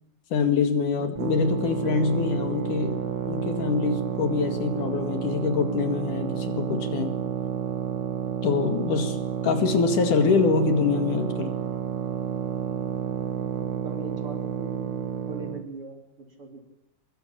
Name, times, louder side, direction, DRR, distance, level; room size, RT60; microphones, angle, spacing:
voice 1, 0.3-7.1 8.4-11.5, left 5 dB, 70° left, 7 dB, 3.5 m, -25 dB
sound 1, 1.1-15.7, right 9 dB, 65° right, 1.1 m, -30 dB
voice 2, 13.8-15.0 15.3-16.6, right 3 dB, 40° right, 3 dB, 4.2 m, -41 dB
23.5 x 22.5 x 8.7 m, 0.84 s
omnidirectional pair, 3.8 m